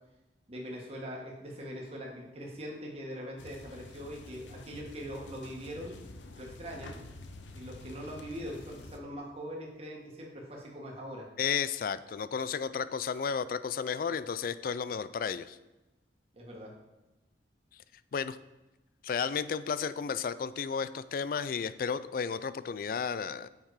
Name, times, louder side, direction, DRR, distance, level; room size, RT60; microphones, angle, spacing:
voice 1, 0.5-5.9 6.3-7.0 7.5-11.3 16.3-16.7, equal, 35° right, -2 dB, 1.6 m, -42 dB
sound 1, 3.4-9.0, left 2 dB, 90° left, 0.8 m, -48 dB
voice 2, 11.4-15.6 18.1-18.4 19.0-23.5, left 6 dB, 50° left, 15 dB, 0.3 m, -33 dB
7.2 x 5.8 x 4.8 m, 1.0 s
head